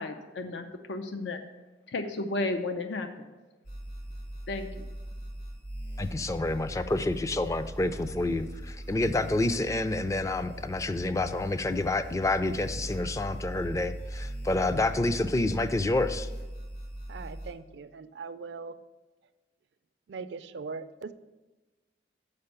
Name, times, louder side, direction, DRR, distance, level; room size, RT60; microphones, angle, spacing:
voice 1, 0.0-1.4 1.9-3.1 4.5-4.7, left 2 dB, 85° left, 7 dB, 0.6 m, -33 dB
sound 1, 3.6-17.5, right 1 dB, 60° left, 2.3 m, -40 dB
voice 2, 6.0-16.3, left 2 dB, 20° left, 11 dB, 0.4 m, -28 dB
voice 3, 17.1-18.7 20.1-21.1, right 4 dB, 70° right, 11 dB, 0.4 m, -40 dB
6.7 x 5.1 x 6.8 m, 1.2 s
head